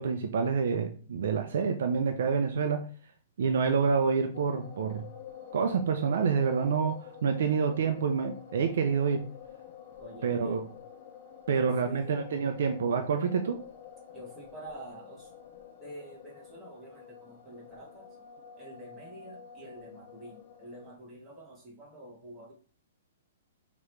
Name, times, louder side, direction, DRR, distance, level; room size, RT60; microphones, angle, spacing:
voice 1, 0.0-2.9 3.4-5.0 5.5-9.3 10.2-10.6 11.5-13.6, right 5 dB, 60° right, 0.5 m, -27 dB
sound 1, 4.3-21.0, left 8 dB, 40° left, 0.5 m, -49 dB
voice 2, 10.0-10.7 11.5-12.3 14.1-15.3 15.8-18.1 18.6-22.5, right 1 dB, 10° right, 1.3 m, -47 dB
5.1 x 3.0 x 3.2 m
hypercardioid pair, 170°, 0 cm